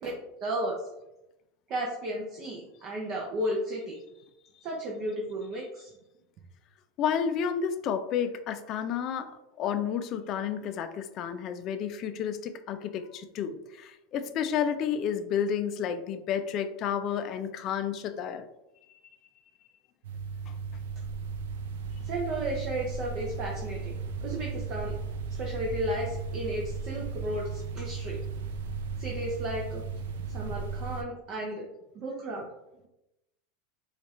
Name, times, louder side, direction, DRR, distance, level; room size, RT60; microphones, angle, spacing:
voice 1, 0.0-0.8 1.7-4.0 4.6-5.9 22.0-23.9 24.2-24.9 25.3-28.2 29.0-29.8 30.3-31.7 31.9-32.5, right 1 dB, 40° right, -1 dB, 0.6 m, -34 dB
voice 2, 7.0-9.3 9.6-18.5, left 8 dB, 40° left, 9 dB, 0.3 m, -31 dB
sound 1, 20.0-31.0, right 5 dB, 90° right, 0.4 m, -36 dB
4.3 x 2.4 x 3.1 m, 0.91 s
supercardioid pair, 145°, 0 cm